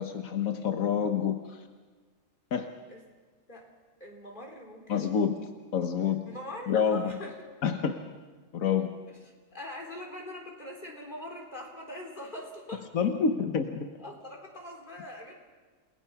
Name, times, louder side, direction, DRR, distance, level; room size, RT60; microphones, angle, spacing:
voice 1, 0.0-1.6 2.5-2.7 4.9-5.5 5.7-6.2 6.7-7.2 7.6-8.0 8.5-8.9 12.9-13.9, left 7 dB, 85° left, 6 dB, 1.5 m, -27 dB
voice 2, 4.0-5.1 6.2-7.3 9.1-12.9 14.0-15.3, left 1 dB, 35° left, 0 dB, 4.1 m, -43 dB
29.5 x 19.5 x 5.9 m, 1.4 s
omnidirectional pair, 1.4 m